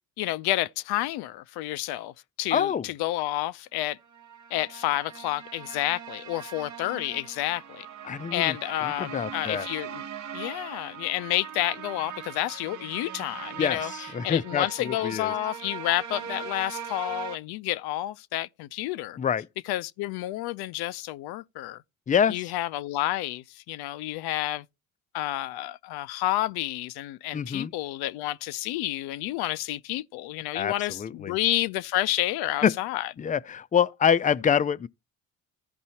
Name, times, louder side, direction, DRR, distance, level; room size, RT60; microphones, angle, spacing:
voice 1, 0.2-2.1 2.4-4.0 4.5-7.9 8.3-10.0 10.3-19.2 19.7-21.8 22.3-24.6 25.1-33.1, left 15 dB, 75° left, 0.6 m, -30 dB
voice 2, 2.5-2.9 8.0-8.5 8.8-9.7 13.6-15.3 19.2-19.5 22.1-22.5 27.3-27.7 30.5-31.3 32.6-32.7 33.2-34.9, left 8 dB, 20° left, 0.4 m, -26 dB
sound 1, 4.0-17.4, right 8 dB, 50° right, 0.9 m, -40 dB
15.0 x 5.3 x 2.8 m
supercardioid pair, 70°, 38 cm